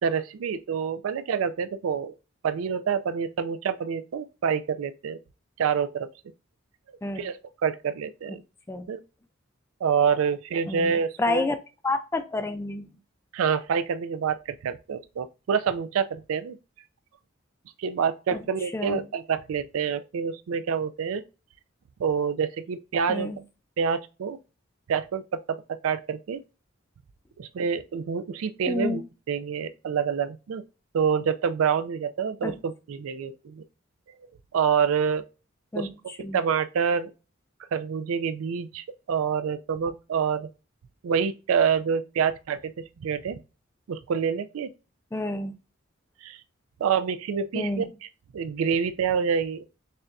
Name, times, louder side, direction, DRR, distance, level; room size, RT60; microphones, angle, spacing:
voice 1, 0.0-2.1 2.4-5.2 5.6-6.1 7.2-7.4 7.6-8.4 8.9-9.0 9.8-11.5 13.3-16.6 17.8-21.2 22.0-23.3 23.8-24.4 24.9-25.6 25.8-26.4 27.4-29.0 29.3-30.6 30.9-33.6 34.5-35.2 35.8-35.9 36.3-37.1 37.7-40.5 41.0-43.4 43.9-44.7 46.2-46.4 46.8-47.9 48.3-49.7, right 6 dB, 90° right, 0.4 m, -27 dB
voice 2, 10.7-11.6 11.8-13.0 18.3-18.4 18.7-19.1 23.1-23.4 28.7-29.0 32.4-32.6 35.7-36.4 45.1-45.6 47.5-47.9, left 2 dB, 10° left, 0.3 m, -30 dB
6.6 x 2.3 x 2.5 m
head